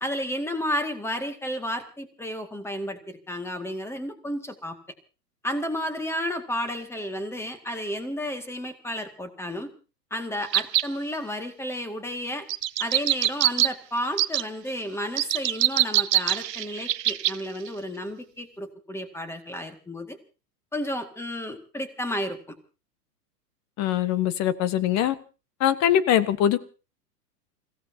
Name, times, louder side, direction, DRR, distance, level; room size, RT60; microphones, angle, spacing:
voice 1, 0.0-4.8 5.4-9.7 10.1-12.5 12.8-20.2 20.7-22.6, equal, 5° left, 8 dB, 2.1 m, -32 dB
sound 1, 10.5-10.9 12.5-13.7 14.2-14.4 15.2-17.4 17.7-17.8, right 13 dB, 75° right, 0.7 m, -23 dB
voice 2, 23.8-25.1 25.6-26.6, left 10 dB, 35° left, 14 dB, 1.3 m, -22 dB
29.0 x 16.5 x 2.8 m, 0.34 s
hypercardioid pair, 110°, 49 cm